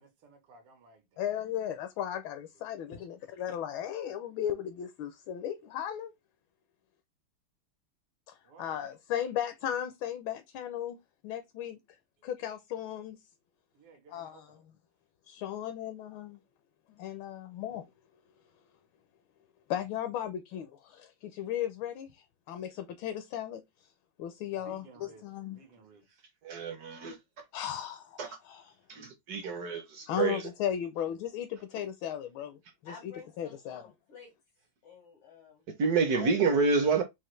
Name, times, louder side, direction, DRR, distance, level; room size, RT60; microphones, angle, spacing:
voice 1, 0.0-1.5 2.5-2.7 8.4-8.8 13.7-14.6 24.6-26.1, right 4 dB, 85° right, 2.1 m, -56 dB
voice 2, 1.2-6.1 8.3-11.0 11.2-11.8 12.2-13.2 14.1-14.5 15.3-16.4 17.0-17.9 19.7-23.6 24.2-25.6 27.5-28.6 30.1-33.1 33.4-33.8 36.2-36.3, left 10 dB, 75° left, 1.3 m, -36 dB
voice 3, 26.4-27.4 28.2-28.4 28.9-30.5 35.8-37.0, right 4 dB, 65° right, 0.9 m, -28 dB
voice 4, 32.8-34.3 34.8-35.6, left 5 dB, 90° left, 2.5 m, -51 dB
5.7 x 2.5 x 3.1 m
omnidirectional pair, 2.4 m